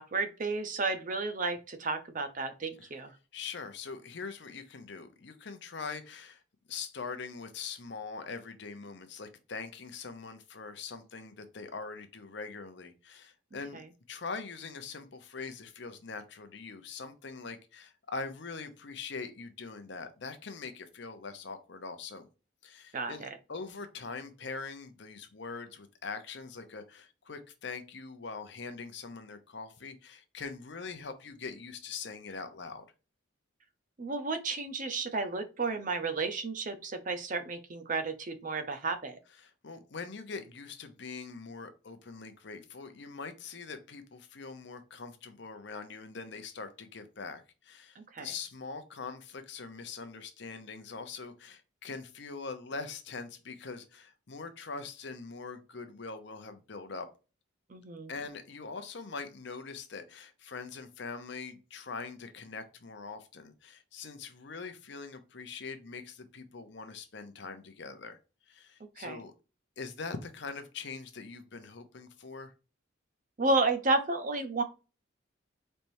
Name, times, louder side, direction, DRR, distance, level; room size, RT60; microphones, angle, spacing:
voice 1, 0.0-3.1 13.7-13.8 22.9-23.4 34.0-39.2 48.0-48.3 57.7-58.1 69.0-69.2 73.4-74.6, right 3 dB, 40° right, 0.6 m, -32 dB
voice 2, 3.3-6.4 6.7-13.8 14.1-22.3 22.6-32.8 39.4-57.1 58.1-68.2 68.5-69.3 69.8-72.5, left 4 dB, 60° left, 0.7 m, -43 dB
4.3 x 3.3 x 2.6 m
head